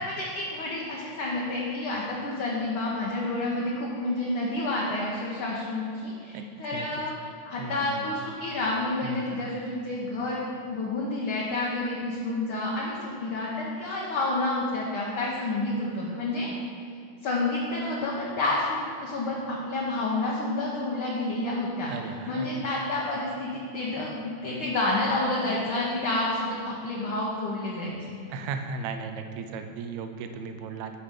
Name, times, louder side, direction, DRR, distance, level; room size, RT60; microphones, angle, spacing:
voice 1, 0.0-7.1 7.4-16.5 17.2-28.2, left 2 dB, 65° left, -4 dB, 1.3 m, -29 dB
voice 2, 7.6-8.1 9.0-9.5 21.9-22.7 28.3-30.9, right 5 dB, 75° right, 7 dB, 1.9 m, -36 dB
7.6 x 5.1 x 6.5 m, 2.6 s
omnidirectional pair, 3.5 m